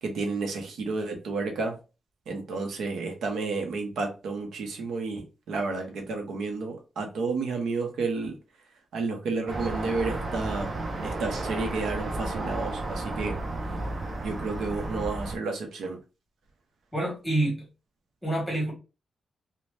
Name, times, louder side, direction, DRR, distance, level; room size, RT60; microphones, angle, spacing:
voice 1, 0.0-1.8 2.3-8.4 8.9-10.7 11.0-13.3 14.2-16.0, right 3 dB, 85° right, 0.7 m, -31 dB
sound 1, 9.5-15.4, right 2 dB, 35° right, 0.5 m, -32 dB
voice 2, 16.9-17.6 18.2-18.7, right 1 dB, 5° left, 1.2 m, -27 dB
2.6 x 2.1 x 3.2 m
wide cardioid pair, 170°, 0 cm